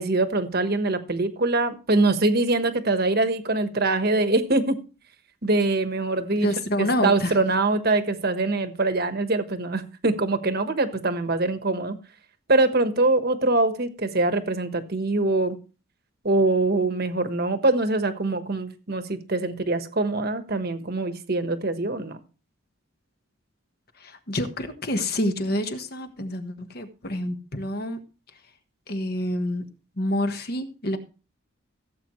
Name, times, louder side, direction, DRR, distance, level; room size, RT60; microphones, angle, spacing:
voice 1, 0.0-4.8 5.4-6.5 6.8-12.0 12.5-15.6 16.2-22.2, right 2 dB, 50° right, 9 dB, 1.2 m, -23 dB
voice 2, 6.3-7.4 24.0-28.0 28.9-29.7 30.0-31.0, left 1 dB, 45° left, 7 dB, 1.3 m, -27 dB
16.5 x 8.0 x 3.1 m, 0.34 s
head